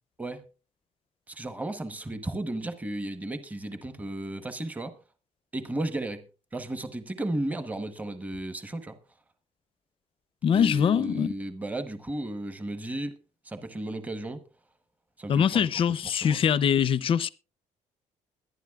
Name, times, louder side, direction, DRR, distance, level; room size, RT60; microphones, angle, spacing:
voice 1, 1.3-4.9 5.5-6.2 6.5-9.0 10.5-13.2 13.4-14.4 15.2-15.7 16.2-16.4, right 1 dB, 10° right, 1.0 m, -34 dB
voice 2, 10.4-11.3 15.3-17.3, left 8 dB, 40° left, 0.6 m, -23 dB
22.0 x 11.0 x 2.4 m
cardioid pair, 145°, 14 cm